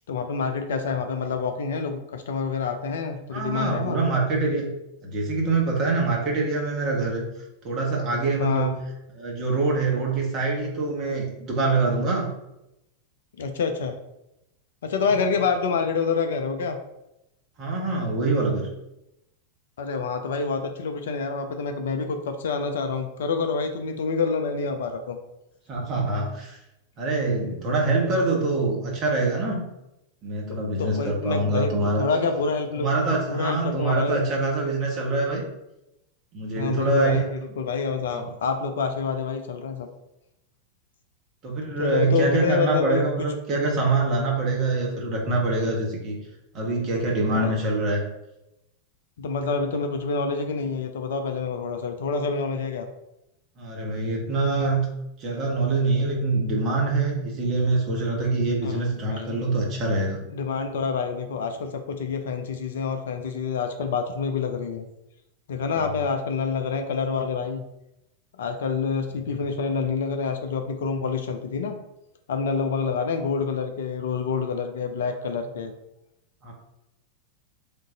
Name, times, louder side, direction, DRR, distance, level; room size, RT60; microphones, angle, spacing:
voice 1, 0.1-4.0 8.4-8.8 13.4-13.9 14.8-16.8 19.8-25.2 27.3-27.6 30.8-31.7 32.0-34.3 36.6-39.9 41.8-43.3 47.3-47.5 49.2-52.9 58.6-58.7 59.1-59.4 60.3-64.9 65.5-67.6 68.4-71.8 72.3-75.7, left 5 dB, 60° left, 6 dB, 0.4 m, -27 dB
voice 2, 3.3-4.7 5.0-7.2 7.6-8.7 9.1-12.3 17.6-18.7 25.7-26.6 27.0-29.6 30.2-32.0 32.8-35.5 36.3-37.3 38.1-38.3 41.4-46.2 46.5-48.0 53.6-54.9 55.2-60.2 65.7-65.9 69.2-69.4 76.4-76.5, right 3 dB, 35° right, -1 dB, 1.2 m, -25 dB
3.7 x 2.5 x 3.9 m, 0.88 s
figure-of-eight pair, 90°, 0 cm